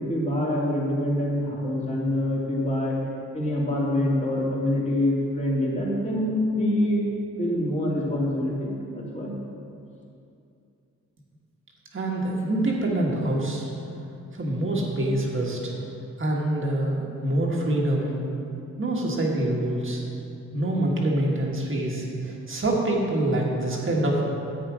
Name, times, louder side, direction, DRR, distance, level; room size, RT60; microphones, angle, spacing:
voice 1, 0.0-2.9 3.3-7.0 7.4-9.3, left 1 dB, 25° left, -5 dB, 2.6 m, -25 dB
voice 2, 11.9-13.7 14.3-15.7 16.2-18.2 18.8-20.0 20.5-24.2, right 1 dB, 40° right, -2 dB, 1.7 m, -25 dB
10.0 x 8.3 x 4.9 m, 2.6 s
wide cardioid pair, 110°, 31 cm